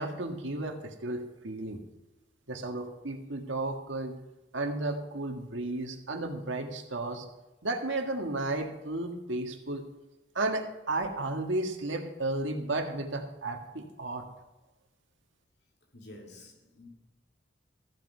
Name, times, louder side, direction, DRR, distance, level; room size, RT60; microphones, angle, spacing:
voice 1, 0.0-1.8 2.5-4.2 4.5-7.3 7.6-9.9 10.4-14.3, right 2 dB, 80° right, 1.8 m, -33 dB
voice 2, 15.9-16.9, left 1 dB, 60° left, 2.7 m, -49 dB
15.0 x 8.0 x 5.6 m
head